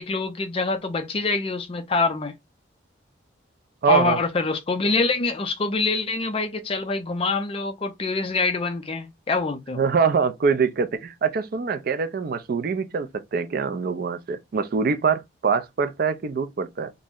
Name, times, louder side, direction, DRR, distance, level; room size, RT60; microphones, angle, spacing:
voice 1, 0.0-2.3 3.9-9.8, left 3 dB, 30° left, 0.4 m, -25 dB
voice 2, 3.8-4.2 9.8-16.9, right 5 dB, 45° right, 0.3 m, -24 dB
2.5 x 2.0 x 3.5 m
head